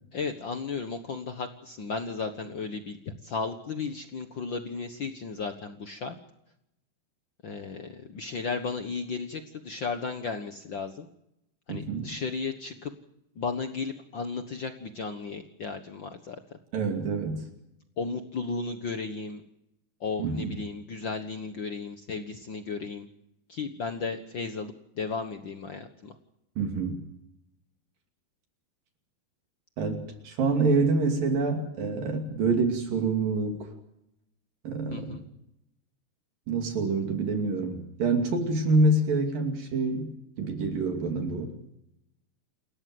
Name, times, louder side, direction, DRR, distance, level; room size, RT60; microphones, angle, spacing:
voice 1, 0.1-6.1 7.4-11.1 11.7-12.9 13.3-16.4 18.0-19.4 20.0-23.1 23.5-26.1 34.9-35.2, left 4 dB, 75° left, 7 dB, 1.0 m, -34 dB
voice 2, 11.7-12.1 16.7-17.5 20.2-20.5 26.6-27.0 29.8-33.7 34.6-35.2 36.5-40.1 40.4-41.5, right 3 dB, 65° right, 4 dB, 4.3 m, -26 dB
29.0 x 14.0 x 7.8 m, 0.82 s
omnidirectional pair, 4.3 m